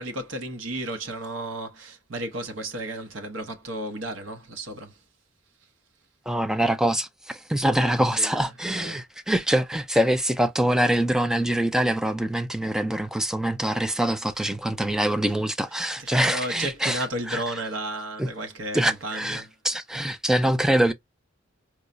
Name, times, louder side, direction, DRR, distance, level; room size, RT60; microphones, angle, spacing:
voice 1, 0.0-5.0 7.7-9.0 14.4-14.5 16.0-19.5, right 1 dB, 70° right, 0.8 m, -34 dB
voice 2, 6.3-17.4 18.2-18.3 18.7-20.9, right 1 dB, 5° right, 0.3 m, -24 dB
4.6 x 2.1 x 2.5 m
head